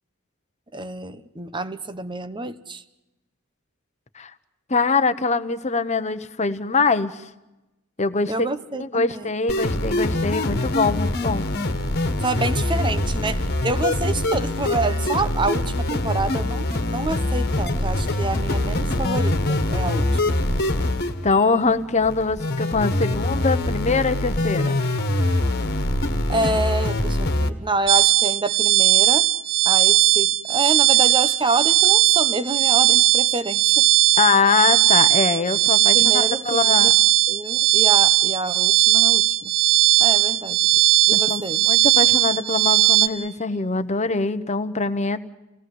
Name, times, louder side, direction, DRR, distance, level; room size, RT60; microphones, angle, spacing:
voice 1, 0.7-2.8 8.3-9.3 12.2-20.4 26.3-29.3 29.6-33.9 35.9-36.9 37.3-39.5 40.0-40.6 41.1-41.6, right 2 dB, 20° right, 1.0 m, -27 dB
voice 2, 4.7-7.2 8.0-8.3 8.8-11.5 21.2-24.8 34.2-36.9 41.1-45.2, left 4 dB, 30° left, 1.1 m, -23 dB
sound 1, 9.5-27.5, left 1 dB, 50° left, 1.8 m, -24 dB
sound 2, 27.9-43.1, right 15 dB, 55° right, 1.2 m, -18 dB
28.5 x 18.0 x 7.9 m
head